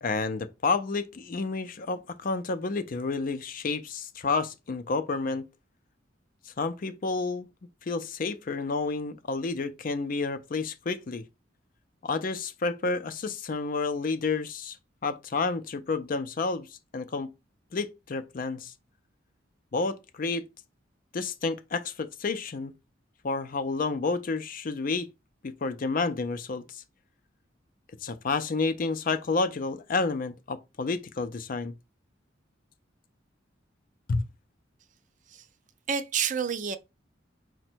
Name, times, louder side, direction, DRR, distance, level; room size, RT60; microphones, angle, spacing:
voice 1, 0.0-5.5 6.5-7.5 7.8-11.2 12.0-14.8 15.0-17.3 17.7-18.7 19.7-20.5 21.1-22.7 23.2-25.1 25.4-26.8 28.0-31.7 34.1-34.2, left 4 dB, 45° left, 0.5 m, -30 dB
voice 2, 35.9-36.8, right 7 dB, 40° right, 0.4 m, -29 dB
5.0 x 2.2 x 4.4 m
head